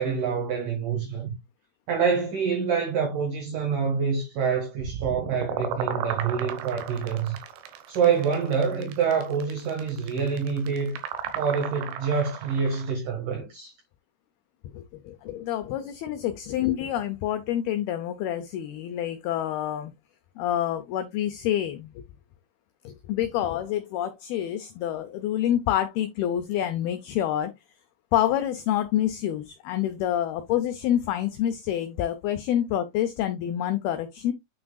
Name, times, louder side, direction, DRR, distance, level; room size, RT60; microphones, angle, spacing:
voice 1, 0.0-1.3 1.9-7.4 7.9-11.0 11.3-13.7, right 6 dB, 60° right, 2.6 m, -26 dB
sound 1, 4.8-12.9, right 8 dB, 90° right, 3.6 m, -35 dB
voice 2, 14.7-19.9 20.4-22.0 22.8-27.5 28.1-34.3, left 11 dB, 90° left, 2.1 m, -27 dB
9.0 x 6.0 x 2.3 m
omnidirectional pair, 5.3 m